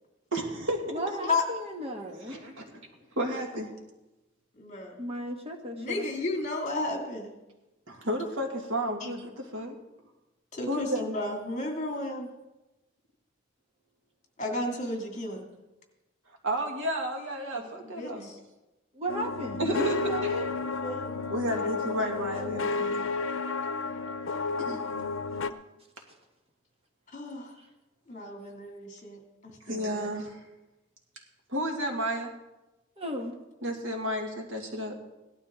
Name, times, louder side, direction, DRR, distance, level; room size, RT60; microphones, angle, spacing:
voice 1, 0.3-1.0 2.3-2.7 3.2-3.7 7.9-9.7 10.7-11.1 16.4-18.3 19.6-20.0 20.2-20.3 21.3-23.0 24.6-24.8 29.6-30.4 31.5-32.3 33.6-35.0, equal, 80° right, 2 dB, 2.3 m, -32 dB
voice 2, 0.9-2.4 5.0-6.0 18.9-20.5 33.0-33.3, equal, 30° right, 3 dB, 1.4 m, -35 dB
voice 3, 4.5-5.0 5.8-7.3 9.0-9.1 10.5-12.3 14.4-15.5 17.5-18.4 20.8-21.1 27.1-27.5 28.1-30.1, left 2 dB, 40° left, 2 dB, 2.5 m, -33 dB
sound 1, 19.1-25.5, left 3 dB, 85° left, 0.6 m, -32 dB
17.0 x 12.0 x 3.7 m, 1.0 s
head